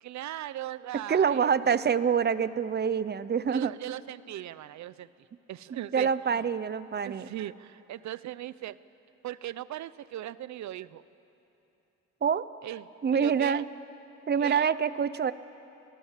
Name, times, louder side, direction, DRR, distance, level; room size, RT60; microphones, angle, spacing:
voice 1, 0.0-1.5 3.5-5.1 5.5-6.4 7.0-8.8 9.2-11.0 12.6-12.9 13.1-13.7 14.4-14.7, right 13 dB, 65° right, 17 dB, 0.7 m, -38 dB
voice 2, 1.1-3.7 5.7-7.3 12.2-12.4 13.0-13.6 14.3-15.3, right 7 dB, 35° right, 16 dB, 0.8 m, -26 dB
28.5 x 19.5 x 7.5 m, 3.0 s
cardioid pair, 90°, 30 cm